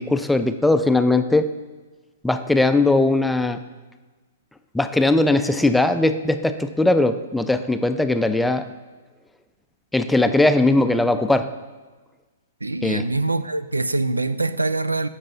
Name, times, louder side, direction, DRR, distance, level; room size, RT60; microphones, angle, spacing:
voice 1, 0.0-1.5 2.2-3.6 4.7-8.7 9.9-11.5 12.8-13.1, left 2 dB, 5° left, 0.4 m, -19 dB
voice 2, 12.6-15.1, right 2 dB, 80° right, 0.3 m, -24 dB
14.0 x 5.4 x 2.7 m
figure-of-eight pair, 110°, 0 cm